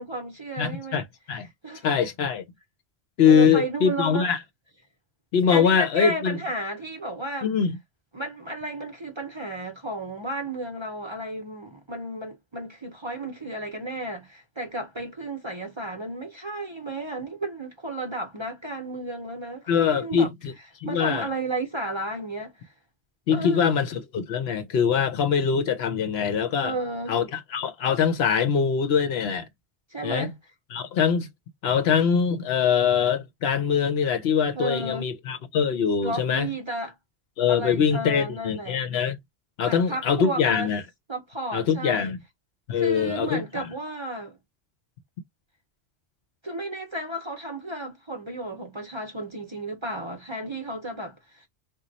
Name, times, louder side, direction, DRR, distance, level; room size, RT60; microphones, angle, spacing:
voice 1, 0.0-1.0 1.6-2.1 3.3-4.3 5.5-7.5 8.1-20.3 20.8-22.7 23.3-23.8 26.6-27.2 29.9-30.3 34.5-35.1 36.0-36.9 37.5-38.8 39.6-40.7 41.1-42.1 42.7-44.4 46.4-51.5, right 1 dB, 30° right, 0.6 m, -33 dB
voice 2, 0.6-1.5 1.8-2.4 3.2-4.4 5.3-6.4 7.4-7.8 19.7-20.5 20.8-21.3 23.3-26.7 27.1-29.5 30.0-30.3 30.7-31.3 31.6-36.5 37.4-39.2 39.6-40.8 41.5-42.2 42.7-43.7, left 7 dB, 70° left, 0.8 m, -23 dB
3.0 x 2.2 x 3.9 m
omnidirectional pair, 1.2 m